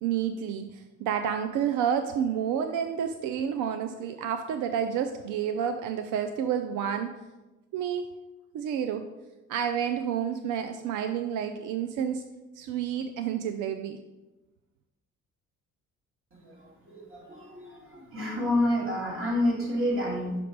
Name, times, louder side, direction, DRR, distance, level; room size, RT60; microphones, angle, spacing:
voice 1, 0.0-7.1 7.7-8.1 8.5-9.1 9.5-12.2 12.6-14.0, right 8 dB, 90° right, 8 dB, 0.5 m, -29 dB
voice 2, 16.4-20.4, left 1 dB, 45° right, -3 dB, 2.6 m, -29 dB
6.0 x 5.2 x 4.6 m, 1.1 s
cardioid pair, 90°, 30 cm